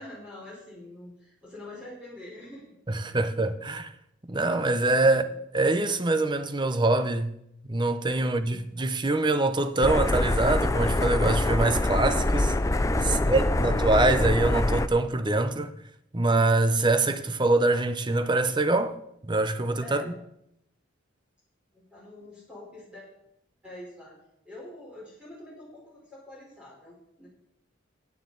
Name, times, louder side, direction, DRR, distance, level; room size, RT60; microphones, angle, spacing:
voice 1, 0.0-2.8 3.1-3.3 8.1-8.7 13.0-13.5 19.8-20.2 21.7-23.1 23.6-24.2 24.4-27.3, left 1 dB, 5° right, 4.0 m, -45 dB
voice 2, 2.9-3.9 4.3-5.3 5.5-7.3 7.7-12.5 13.2-15.7 16.1-19.0 19.3-20.0, right 2 dB, 20° right, 0.7 m, -24 dB
sound 1, 9.8-14.9, left 2 dB, 15° left, 0.4 m, -25 dB
14.5 x 9.3 x 3.9 m
head